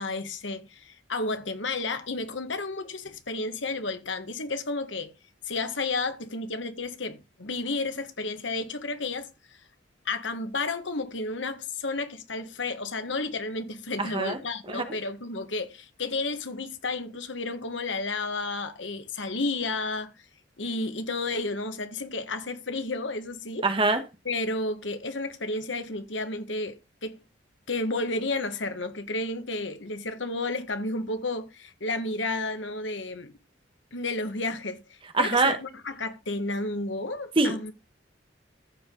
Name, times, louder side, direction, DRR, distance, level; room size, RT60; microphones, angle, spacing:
voice 1, 0.0-5.1 5.5-9.3 10.1-20.1 20.6-23.7 24.3-27.2 27.7-33.3 33.9-34.8 35.2-37.7, left 3 dB, 85° left, 1.8 m, -32 dB
voice 2, 14.0-14.4 14.7-14.9 23.6-24.0 35.1-35.6 37.4-37.6, right 3 dB, 30° right, 1.5 m, -24 dB
14.5 x 5.2 x 3.9 m
head